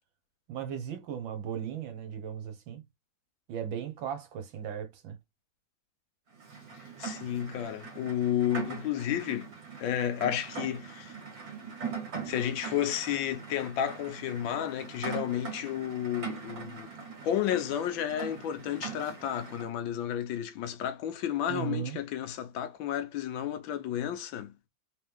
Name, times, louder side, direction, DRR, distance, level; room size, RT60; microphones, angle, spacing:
voice 1, 0.5-2.8 3.5-5.2 21.5-22.0, right 8 dB, 75° right, 1.6 m, -36 dB
Rain, 6.4-19.7, right 5 dB, 50° right, 2.0 m, -41 dB
voice 2, 7.0-9.5 9.8-11.2 12.2-16.9 17.2-24.5, left 10 dB, 80° left, 1.4 m, -32 dB
3.7 x 3.0 x 3.5 m
omnidirectional pair, 2.1 m